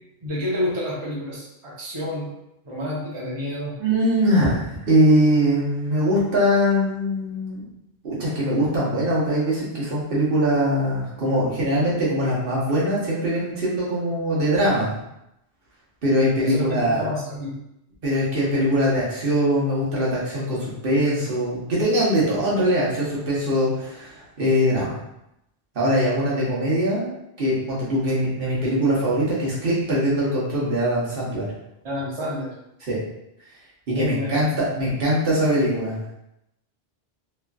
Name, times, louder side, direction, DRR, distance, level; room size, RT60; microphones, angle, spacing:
voice 1, 0.2-2.3 2.6-3.8 16.4-17.5 31.8-32.5 33.9-34.7, left 1 dB, 35° right, -6 dB, 0.7 m, -29 dB
voice 2, 3.8-7.6 8.0-14.9 16.0-17.0 18.0-25.0 25.7-27.1 27.4-31.5 32.9-33.0 33.9-35.9, equal, 60° right, -6 dB, 1.0 m, -22 dB
3.0 x 2.4 x 2.2 m, 0.84 s
omnidirectional pair, 1.1 m